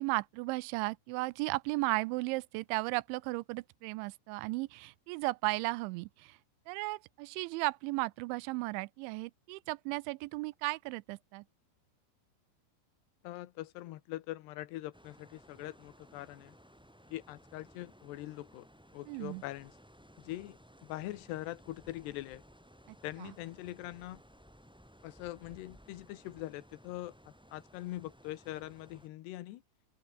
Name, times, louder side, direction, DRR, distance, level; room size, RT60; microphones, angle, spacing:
voice 1, 0.0-6.4 6.7-11.4 19.1-19.4 23.2-23.3, right 23 dB, 85° right, 2.9 m, -35 dB
voice 2, 13.2-16.5 17.1-18.7 18.9-19.7 20.2-22.4 23.0-24.2 25.0-27.2 27.5-29.6, left 16 dB, 70° left, 3.1 m, -43 dB
sound 1, 14.9-29.1, equal, ahead, 5.5 m, -59 dB
open air
omnidirectional pair, 5.3 m